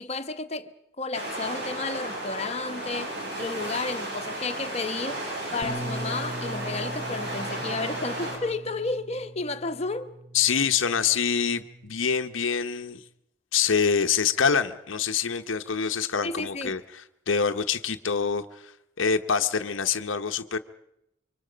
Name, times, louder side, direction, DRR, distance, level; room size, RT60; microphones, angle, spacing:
voice 1, 0.0-5.2 5.5-10.1 16.2-16.8, left 3 dB, 35° left, 1.0 m, -32 dB
sound 1, 1.1-8.4, right 1 dB, 55° right, 6.8 m, -34 dB
Bass guitar, 5.6-11.9, right 1 dB, 5° right, 1.4 m, -40 dB
voice 2, 10.3-13.0 13.5-18.7 19.0-20.6, left 6 dB, 85° left, 0.9 m, -25 dB
26.5 x 24.5 x 5.1 m
head